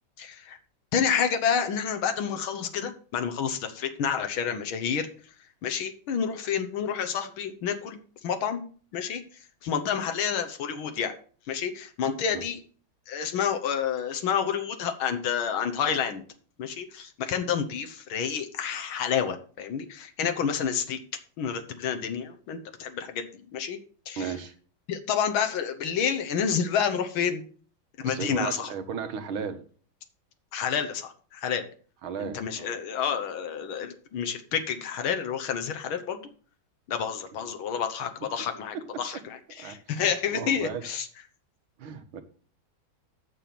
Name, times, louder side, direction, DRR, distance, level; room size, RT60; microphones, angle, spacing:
voice 1, 0.2-0.6 0.9-5.1 5.6-8.7 8.9-9.2 9.6-11.1 11.5-12.6 13.1-16.2 16.6-21.0 21.4-23.3 23.5-23.8 24.1-24.3 24.9-27.4 28.0-28.7 30.5-31.7 32.2-36.3 36.9-41.1, left 7 dB, 85° left, 7 dB, 1.8 m, -29 dB
voice 2, 24.2-24.5 28.0-29.6 32.0-32.7 38.7-38.8 39.6-41.0 41.8-42.2, right 6 dB, 85° right, 9 dB, 2.0 m, -35 dB
8.8 x 6.9 x 5.9 m, 0.42 s
omnidirectional pair, 2.2 m